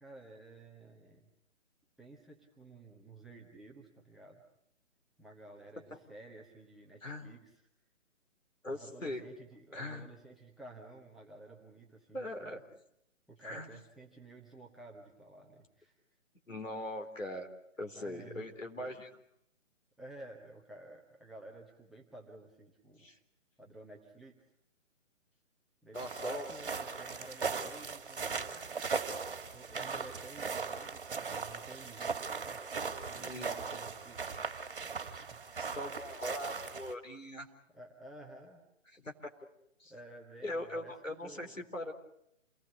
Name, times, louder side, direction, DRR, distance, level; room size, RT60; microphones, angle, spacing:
voice 1, 0.0-1.3 2.0-4.4 5.2-7.6 8.7-12.6 13.3-15.9 18.0-19.0 20.0-23.1 23.6-24.4 25.8-35.4 37.7-38.6 39.9-41.6, right 2 dB, ahead, -3 dB, 1.0 m, -53 dB
voice 2, 8.6-9.2 9.7-10.1 12.1-12.6 13.4-13.7 16.5-17.5 17.8-19.1 23.0-23.2 25.9-26.5 33.2-33.6 35.6-37.5 38.9-39.3 39.8-39.9 40.4-41.9, left 1 dB, 80° left, 4 dB, 4.0 m, -41 dB
sound 1, 25.9-36.9, right 5 dB, 45° right, 2.4 m, -39 dB
28.0 x 19.0 x 8.3 m, 0.77 s
figure-of-eight pair, 140°, 38 cm